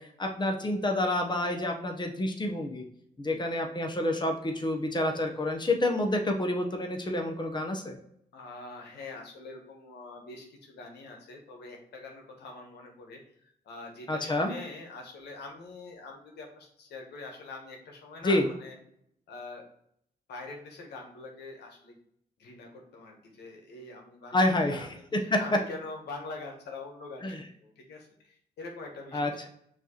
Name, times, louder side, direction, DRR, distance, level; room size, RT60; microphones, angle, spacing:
voice 1, 0.0-2.8 3.2-8.0 14.1-14.5 18.2-18.4 24.3-24.9 25.3-25.4 27.2-27.4 29.1-29.5, left 1 dB, 25° left, 2 dB, 1.0 m, -28 dB
voice 2, 8.3-18.8 19.3-19.6 20.3-22.0 22.4-29.3, left 3 dB, 80° left, 1 dB, 1.1 m, -44 dB
6.1 x 2.8 x 3.0 m, 0.70 s
supercardioid pair, 55°, 17 cm